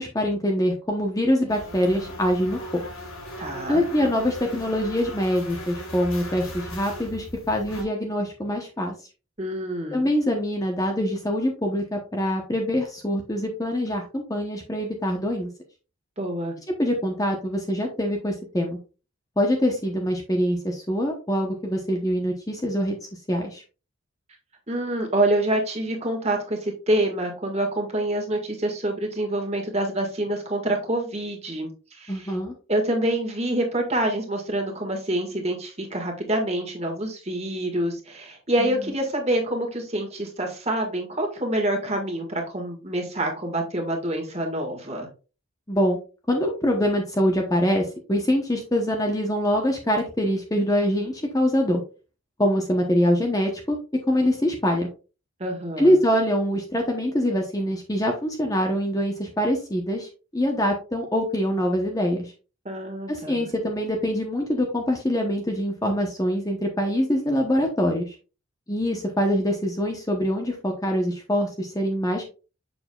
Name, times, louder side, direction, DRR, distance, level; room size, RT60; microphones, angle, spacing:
voice 1, 0.0-2.8 3.7-8.9 9.9-15.5 16.8-18.8 19.4-23.0 23.3-23.6 32.1-32.5 38.6-38.7 45.7-46.0 46.3-51.8 52.4-53.8 54.1-54.9 55.8-60.1 60.3-62.3 63.1-68.1 68.7-72.3, equal, 15° left, 1 dB, 0.9 m, -24 dB
sound 1, 1.5-7.8, left 1 dB, 80° left, 3.1 m, -38 dB
voice 2, 3.4-3.8 9.4-10.1 16.2-16.5 24.7-32.4 32.7-45.1 55.4-56.0 62.7-63.4, right 1 dB, 30° right, 2 dB, 1.8 m, -26 dB
7.0 x 6.2 x 2.4 m, 0.33 s
head